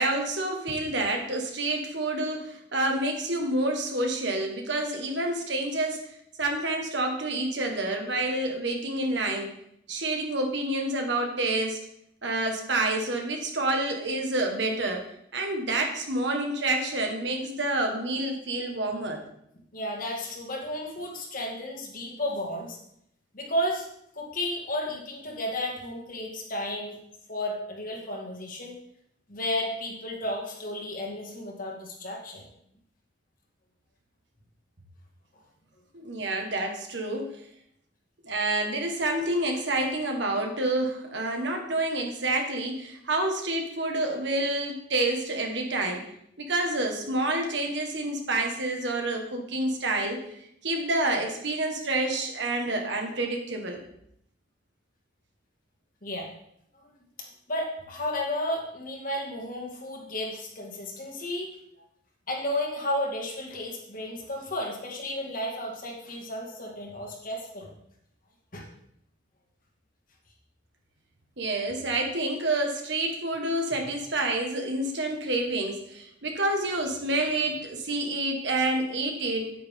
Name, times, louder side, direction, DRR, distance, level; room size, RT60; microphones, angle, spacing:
voice 1, 0.0-6.0 6.4-9.5 9.9-11.9 12.2-15.1 15.3-19.2 35.9-37.4 38.2-46.1 46.4-50.2 50.6-53.8 71.4-79.5, right 2 dB, 60° right, 3 dB, 1.6 m, -28 dB
voice 2, 19.7-22.8 23.3-23.9 24.2-27.0 27.3-28.8 29.3-32.5 56.0-56.3 56.8-56.9 57.2-61.5 62.3-67.7 68.5-68.7, left 1 dB, 45° left, 0 dB, 2.1 m, -33 dB
9.4 x 9.2 x 3.7 m, 0.73 s
head